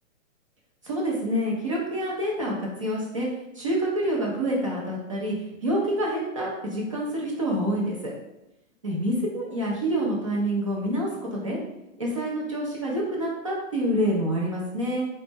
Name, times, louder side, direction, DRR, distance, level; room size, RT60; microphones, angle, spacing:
voice 1, 0.8-3.3 3.6-5.4 5.6-8.1 8.8-11.6 12.0-15.1, right 1 dB, 25° right, -4 dB, 0.4 m, -27 dB
3.8 x 2.1 x 3.3 m, 0.93 s
hypercardioid pair, 170°, 41 cm